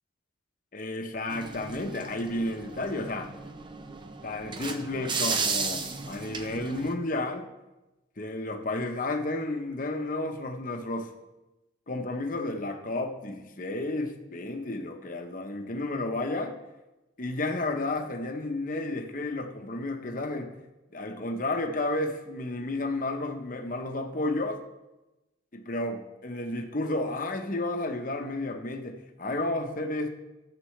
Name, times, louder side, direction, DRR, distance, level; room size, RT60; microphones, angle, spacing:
voice 1, 0.7-3.3 4.2-7.5 8.2-11.1 11.9-16.6 17.2-20.6 20.9-24.6 25.5-30.1, left 2 dB, 40° left, 4 dB, 0.8 m, -32 dB
sound 1, 1.3-6.9, right 4 dB, 25° right, 0.5 m, -34 dB
13.5 x 6.8 x 3.2 m, 1.0 s
head